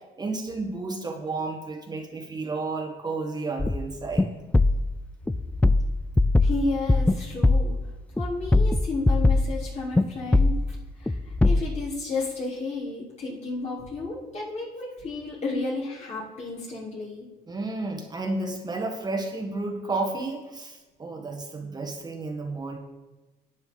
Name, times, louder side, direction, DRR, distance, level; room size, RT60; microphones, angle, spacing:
voice 1, 0.2-4.3 17.5-22.8, right 3 dB, 25° right, 2 dB, 1.5 m, -32 dB
sound 1, 3.6-3.9 4.1-4.3 4.5-4.9 5.3-7.2 7.4-7.7 8.2-9.6 9.9-10.1 10.3-10.7 11.1-11.6, left 2 dB, 5° left, 0.4 m, -21 dB
voice 2, 6.4-7.7 8.2-10.5 11.4-17.3, left 3 dB, 40° left, -4 dB, 3.9 m, -32 dB
12.5 x 9.4 x 4.0 m, 1.1 s
cardioid pair, 110°, 17 cm